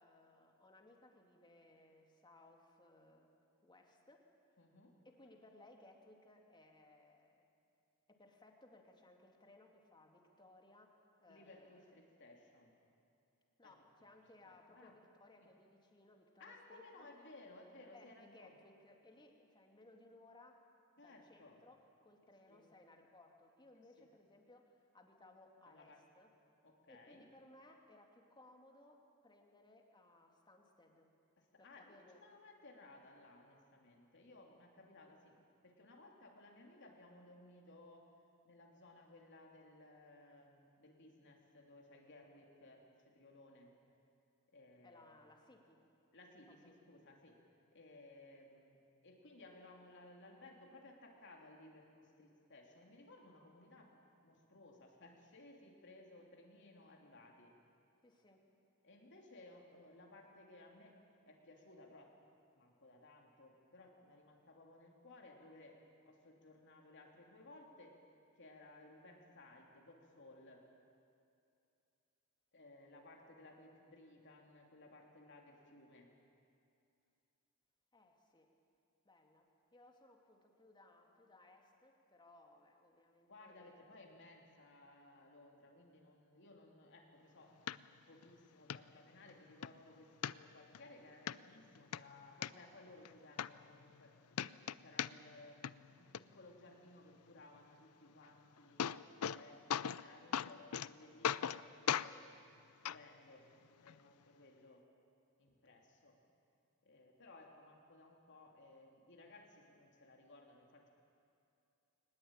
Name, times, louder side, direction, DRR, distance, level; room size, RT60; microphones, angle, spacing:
voice 1, 0.0-3.3 3.6-4.3 5.0-7.5 8.1-10.9 11.2-12.0 13.6-17.1 17.9-20.6 20.9-26.3 26.9-31.1 31.6-32.2 44.8-45.8 46.5-46.8 58.0-58.4 77.9-78.6 79.0-83.8, left 2 dB, 20° left, 2 dB, 2.6 m, -63 dB
voice 2, 4.6-5.0 11.3-12.8 13.6-13.7 14.4-14.9 16.4-18.6 21.0-21.6 22.5-22.7 23.7-24.1 25.7-26.0 26.6-27.3 31.4-38.1 38.4-43.7 44.5-45.2 46.1-47.4 47.7-48.8 49.0-53.9 54.2-57.6 58.8-61.0 61.2-62.2 62.5-68.0 68.3-70.7 72.5-76.1 83.3-94.2 94.8-102.3 102.8-104.9 105.4-106.2 106.8-110.9, left 2 dB, 55° left, 0 dB, 3.1 m, -60 dB
sound 1, 87.7-87.8 88.2-88.3 88.7-88.8 89.3-89.7 90.2-90.8 91.3-91.4 91.7-92.5 93.0-93.1 93.4-94.1 94.3-95.4 95.6-96.2 98.2-98.3 98.6-99.4 99.7-100.0 100.3-100.9 101.2-101.6 101.9-102.1 102.8-103.0 103.9-104.0, left 8 dB, 85° left, 0.5 m, -38 dB
22.0 x 20.5 x 9.0 m, 2.6 s
head